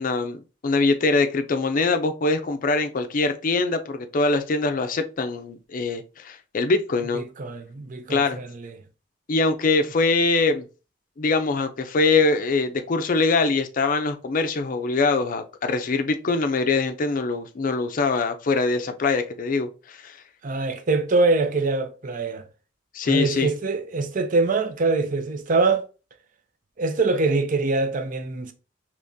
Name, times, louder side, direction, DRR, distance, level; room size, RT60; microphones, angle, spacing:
voice 1, 0.0-7.2 8.1-8.4 9.3-10.6 11.2-20.2 22.9-23.5, left 3 dB, 50° left, 0.5 m, -23 dB
voice 2, 7.1-8.7 20.4-22.4 23.1-25.8 26.8-28.5, right 3 dB, 45° right, 0.5 m, -24 dB
3.5 x 3.0 x 2.6 m
head